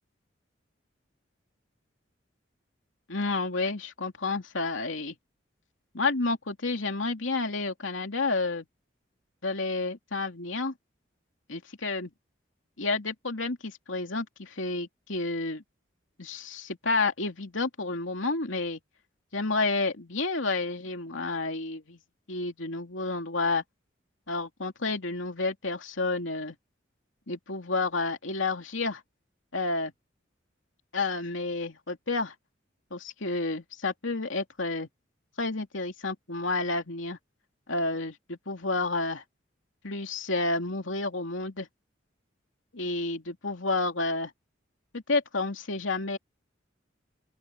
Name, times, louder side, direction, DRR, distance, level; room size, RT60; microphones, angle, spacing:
voice 1, 3.1-5.2 5.9-8.7 9.4-10.7 11.5-12.1 12.8-15.6 16.2-18.8 19.3-22.0 22.3-23.6 24.3-26.6 27.3-29.0 29.5-29.9 30.9-32.3 32.9-34.9 35.4-37.2 37.7-39.2 39.8-41.7 42.7-44.3 44.9-46.2, left 3 dB, 85° left, 2.8 m, -30 dB
open air
head